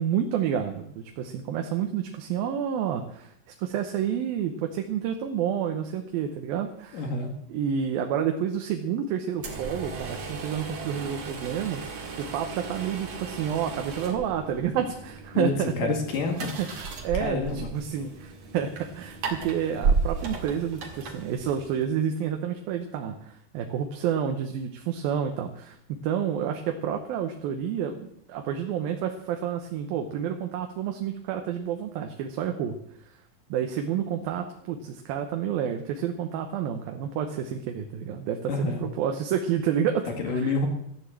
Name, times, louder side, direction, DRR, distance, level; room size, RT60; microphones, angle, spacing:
voice 1, 0.0-3.3 3.6-7.1 7.5-15.9 16.6-16.7 17.0-18.7 18.9-25.8 26.0-32.8 33.5-40.5, right 8 dB, 85° right, 4 dB, 2.8 m, -29 dB
voice 2, 6.9-7.3 15.3-16.5 17.2-17.7 38.5-38.8 40.2-40.7, left 3 dB, 70° left, 3 dB, 3.6 m, -28 dB
sound 1, 9.4-21.9, right 4 dB, 50° right, 2.9 m, -34 dB
14.0 x 9.8 x 7.6 m, 0.74 s
omnidirectional pair, 4.1 m